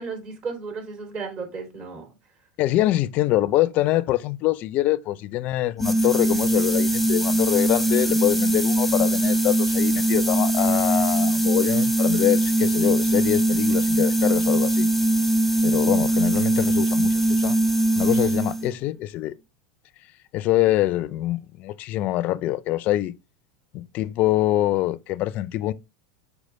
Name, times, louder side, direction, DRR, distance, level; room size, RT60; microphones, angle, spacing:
voice 1, 0.0-2.1, right 4 dB, 40° right, 3.1 m, -34 dB
voice 2, 2.6-14.9 15.6-17.6 18.0-19.3 20.3-23.1 23.7-25.7, left 15 dB, 50° left, 0.5 m, -24 dB
sound 1, 5.8-18.7, right 1 dB, ahead, 1.0 m, -21 dB
6.4 x 4.9 x 3.2 m
hypercardioid pair, 105°, 4 cm